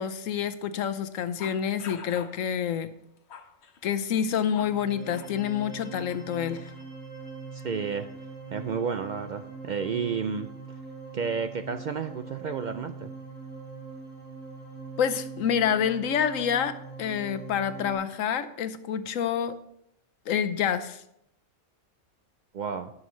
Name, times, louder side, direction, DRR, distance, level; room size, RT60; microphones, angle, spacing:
voice 1, 0.0-2.9 3.8-6.7 15.0-16.7 17.0-19.6 20.3-21.0, left 8 dB, 90° left, 11 dB, 1.1 m, -28 dB
sound 1, 1.4-2.4 3.0-4.8 5.1-5.3 6.1-6.9, left 6 dB, 60° left, 1.0 m, -46 dB
sound 2, 4.4-17.9, right 4 dB, 25° left, 4.5 m, -42 dB
voice 2, 7.5-8.1 8.5-10.5 11.1-13.1 22.5-22.9, right 6 dB, 80° right, 9 dB, 0.4 m, -31 dB
18.0 x 6.4 x 3.1 m, 0.75 s
omnidirectional pair, 1.3 m